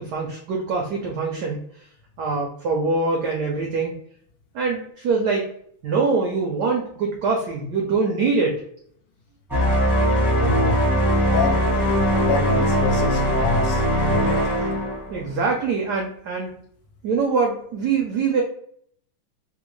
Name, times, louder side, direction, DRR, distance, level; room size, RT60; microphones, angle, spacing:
voice 1, 0.0-1.6 2.2-3.9 4.5-5.5 5.8-8.6 15.1-16.5 17.0-18.4, right 4 dB, 80° right, 0 dB, 0.9 m, -23 dB
sound 1, 9.5-15.3, equal, ahead, 0.4 m, -20 dB
voice 2, 10.4-10.8 11.3-14.4, left 4 dB, 75° left, 3 dB, 1.4 m, -27 dB
3.5 x 2.2 x 3.1 m, 0.65 s
omnidirectional pair, 2.4 m